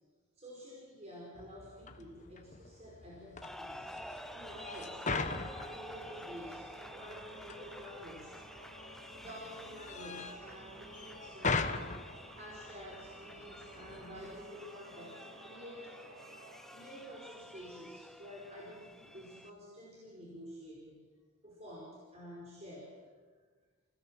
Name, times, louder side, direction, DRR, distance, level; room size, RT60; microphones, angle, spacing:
voice 1, 0.4-3.9 4.3-8.4 9.2-11.7 12.4-16.0 16.7-21.0 21.4-23.0, equal, 30° right, -3 dB, 5.2 m, -50 dB
sound 1, 1.4-14.5, left 4 dB, 35° left, 1.3 m, -42 dB
sound 2, 3.4-19.5, equal, ahead, 0.7 m, -51 dB
sound 3, 3.6-18.2, right 2 dB, 85° right, 3.4 m, -55 dB
30.0 x 17.0 x 7.6 m, 1.4 s
head